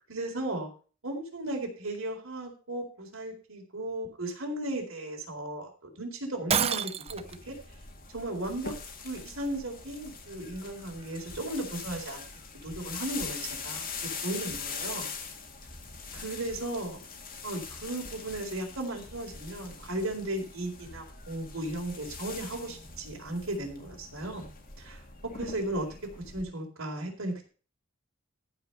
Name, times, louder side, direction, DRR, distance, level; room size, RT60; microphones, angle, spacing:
voice 1, 0.1-0.7 1.0-7.5 8.1-8.7 9.0-12.2 12.6-15.1 16.1-17.0 17.4-24.5 24.8-25.9 26.3-27.5, right 1 dB, 70° right, 0 dB, 4.2 m, -36 dB
Shatter, 6.5-7.4, right 7 dB, 30° right, 0.5 m, -27 dB
sound 1, 7.1-26.4, left 5 dB, 45° left, 2.0 m, -42 dB
14.5 x 5.1 x 6.7 m, 0.38 s
head